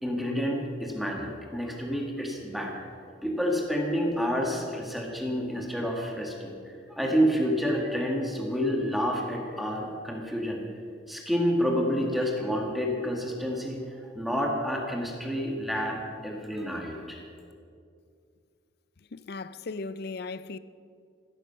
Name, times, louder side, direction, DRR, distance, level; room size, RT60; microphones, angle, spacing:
voice 1, 0.0-2.7 3.2-6.5 6.9-10.6 11.1-17.2, equal, ahead, 1.9 m, -29 dB
voice 2, 19.1-20.6, left 3 dB, 55° left, 0.5 m, -37 dB
15.5 x 13.5 x 5.7 m
head